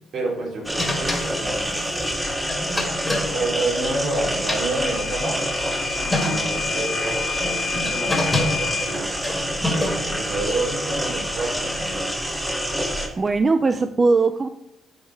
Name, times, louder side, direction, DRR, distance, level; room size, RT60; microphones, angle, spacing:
voice 1, 0.1-2.2 2.7-5.4 5.9-9.1 9.6-12.0, right 2 dB, 65° right, -2 dB, 3.1 m, -29 dB
sound 1, 0.6-13.1, equal, 10° right, 1.6 m, -27 dB
sound 2, 0.8-4.1 4.3-5.4 5.8-5.9 6.1-6.7 7.4-10.2, left 1 dB, 15° left, 2.0 m, -27 dB
Microwave oven / Alarm, 4.8-8.9, left 8 dB, 50° left, 0.8 m, -30 dB
voice 2, 12.8-14.5, right 3 dB, 30° right, 9 dB, 0.4 m, -20 dB
10.5 x 4.4 x 4.9 m, 0.86 s
cardioid pair, 90°, 0 cm